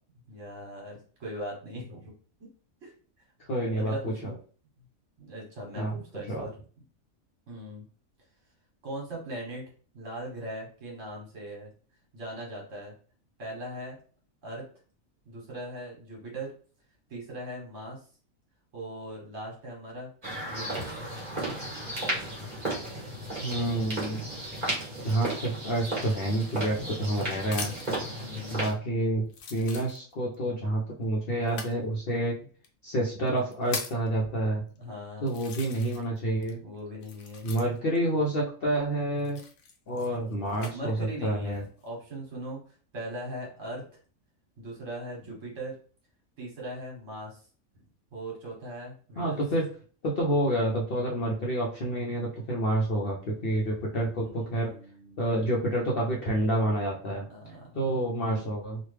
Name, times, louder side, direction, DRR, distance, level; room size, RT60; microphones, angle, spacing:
voice 1, 0.3-2.1 2.8-2.9 3.7-4.3 5.2-6.5 7.5-7.8 8.8-9.6 9.9-11.7 12.1-12.9 13.4-14.0 14.4-14.7 15.3-16.5 17.1-18.0 18.7-20.1 20.5-20.9 28.2-28.7 34.8-35.3 36.6-37.6 40.7-42.6 42.9-43.8 44.6-45.8 46.4-47.4 48.1-49.4 54.0-55.2 57.1-58.4, right 1 dB, 65° right, -2 dB, 1.5 m, -40 dB
voice 2, 3.5-4.3 5.8-5.9 6.3-6.5 23.4-24.2 25.0-27.7 28.5-29.3 29.5-32.4 32.8-34.6 35.2-36.6 37.4-39.4 39.9-40.9 41.2-41.6 49.2-49.7 50.0-54.7 55.2-57.3 57.7-58.8, right 1 dB, 55° left, -3 dB, 0.7 m, -28 dB
sound 1, 20.2-28.7, right 1 dB, 35° right, 1.4 m, -34 dB
sound 2, 26.4-28.0 28.7-28.8 29.3-30.4 31.4-31.8 32.6-32.7 33.3-34.1 34.8-34.9 35.3-36.2 36.4-38.0 39.2-40.7 41.4-41.9, left 5 dB, 90° left, 1.1 m, -40 dB
3.1 x 2.4 x 3.2 m, 0.41 s
omnidirectional pair, 1.4 m